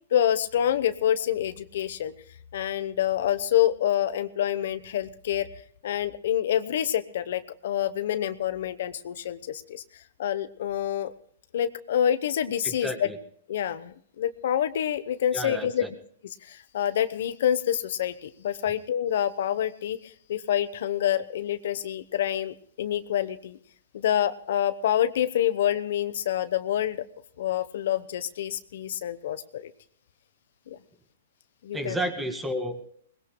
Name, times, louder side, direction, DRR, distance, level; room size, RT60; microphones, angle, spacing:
voice 1, 0.1-2.1 2.5-5.5 5.8-11.1 11.5-13.1 13.5-15.8 16.4-23.6 23.9-27.1 27.4-29.7 30.7-30.8 31.6-32.0, left 10 dB, 65° left, 13 dB, 0.9 m, -27 dB
voice 2, 12.6-13.2 15.3-15.9 31.7-32.8, equal, 5° right, 7 dB, 1.9 m, -31 dB
22.5 x 20.0 x 2.2 m, 0.62 s
hypercardioid pair, 150°, 0 cm